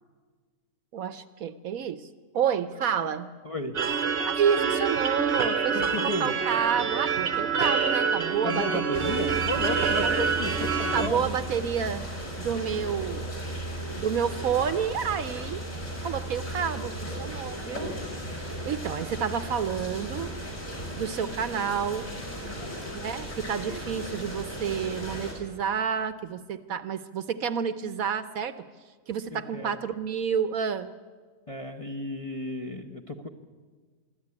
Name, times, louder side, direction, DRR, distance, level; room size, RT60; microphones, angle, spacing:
voice 1, 0.9-2.1 2.3-3.3 4.4-9.0 10.9-12.1 12.4-13.3 14.0-15.6 16.0-17.9 18.4-20.3 21.0-22.1 22.9-28.7 29.1-30.9, right 7 dB, 65° right, 13 dB, 1.1 m, -29 dB
voice 2, 3.4-3.8 5.7-6.3 8.4-11.2 13.6-14.0 22.6-22.9 29.3-29.8 31.5-33.3, left 1 dB, 25° left, 3 dB, 0.9 m, -34 dB
sound 1, 3.7-11.1, right 6 dB, 45° right, 1.0 m, -27 dB
sound 2, 8.9-25.3, right 1 dB, 50° left, 5.3 m, -36 dB
25.0 x 13.0 x 9.7 m, 1.5 s
omnidirectional pair, 1.7 m